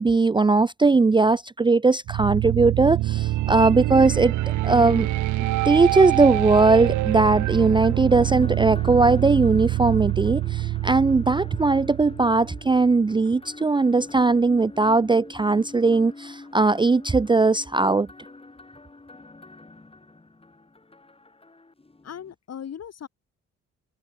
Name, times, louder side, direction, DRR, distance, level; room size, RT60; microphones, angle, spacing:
voice 1, 0.0-4.3 4.6-5.1 5.6-18.1, right 3 dB, 15° right, 0.5 m, -19 dB
sound 1, 2.1-13.0, right 16 dB, 75° right, 0.7 m, -25 dB
sound 2, 8.1-22.3, left 3 dB, 20° left, 6.7 m, -44 dB
voice 2, 22.0-23.1, left 8 dB, 55° left, 5.5 m, -38 dB
cardioid pair, 90°, 30 cm